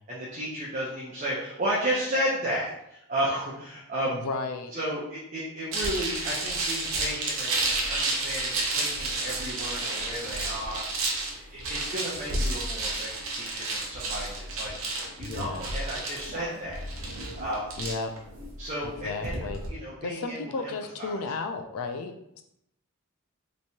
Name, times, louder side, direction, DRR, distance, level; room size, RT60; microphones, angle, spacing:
voice 1, 0.1-4.3 4.7-10.8 11.5-17.1 17.4-17.8 18.6-19.3 19.7-20.7 21.0-21.2, equal, 35° right, -6 dB, 0.6 m, -33 dB
voice 2, 4.0-4.7 15.2-15.7 17.8-18.1 18.8-19.6 20.0-22.4, left 4 dB, 80° left, 6 dB, 0.4 m, -34 dB
sound 1, 5.7-19.7, right 2 dB, 70° right, 0.7 m, -31 dB
3.3 x 3.1 x 2.7 m, 0.78 s
head